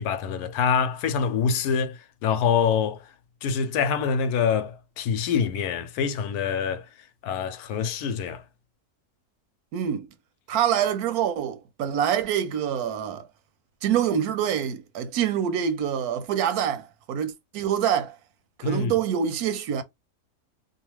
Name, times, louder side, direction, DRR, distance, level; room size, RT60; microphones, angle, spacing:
voice 1, 0.0-3.0 3.4-6.8 7.2-8.4 18.6-18.9, left 6 dB, 85° left, 1.1 m, -25 dB
voice 2, 9.7-10.1 10.5-13.3 13.8-18.2 18.6-19.8, right 9 dB, 85° right, 1.1 m, -26 dB
2.8 x 2.3 x 3.0 m
omnidirectional pair, 1.6 m